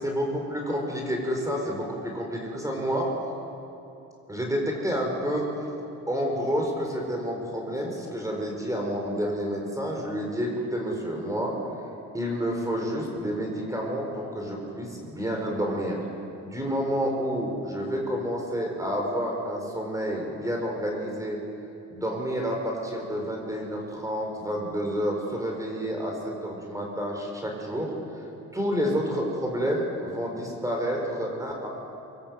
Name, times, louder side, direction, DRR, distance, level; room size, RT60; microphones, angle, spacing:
voice 1, 0.0-3.1 4.3-5.5 6.1-11.5 12.1-16.0 16.4-21.4 21.9-27.9 28.5-31.7, equal, 10° right, 0 dB, 6.0 m, -29 dB
27.0 x 24.5 x 8.3 m, 2.9 s
cardioid pair, 90°, 30 cm